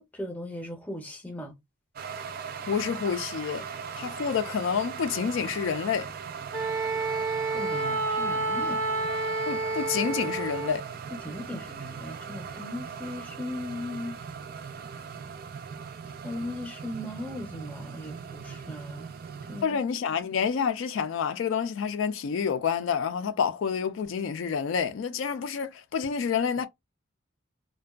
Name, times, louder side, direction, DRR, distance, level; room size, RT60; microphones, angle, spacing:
voice 1, 0.0-1.5 7.5-8.8 11.2-14.2 16.2-19.1 19.5-19.8, left 1 dB, 10° left, 0.6 m, -38 dB
sound 1, 2.0-19.6, right 6 dB, 45° right, 0.3 m, -40 dB
voice 2, 2.7-3.7 3.9-6.1 9.5-10.8 19.6-26.7, left 6 dB, 75° left, 0.4 m, -28 dB
Wind instrument woodwind instrument, 6.5-10.8, right 3 dB, 85° right, 0.6 m, -29 dB
2.5 x 2.2 x 2.3 m
head